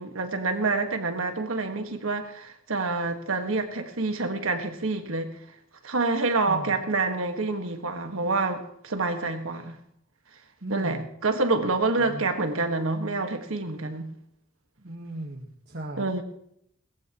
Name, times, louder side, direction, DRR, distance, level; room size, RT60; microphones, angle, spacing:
voice 1, 0.0-5.3 5.8-9.8 10.7-14.1 16.0-16.2, right 3 dB, 85° right, 1.7 m, -27 dB
voice 2, 6.5-6.8 10.6-11.0 12.0-12.2 14.8-16.2, right 1 dB, 55° right, 1.5 m, -37 dB
20.5 x 15.0 x 3.0 m
head